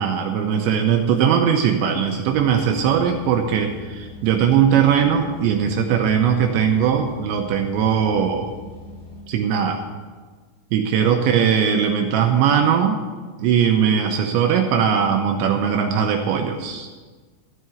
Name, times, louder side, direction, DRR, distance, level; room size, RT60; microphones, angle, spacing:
voice 1, 0.0-8.5 9.3-9.8 10.7-13.0 13.4-16.9, right 8 dB, 80° right, 3 dB, 2.7 m, -19 dB
sound 1, 2.3-9.2, left 1 dB, 55° left, 5.1 m, -41 dB
14.5 x 5.6 x 9.3 m, 1.4 s
omnidirectional pair, 5.9 m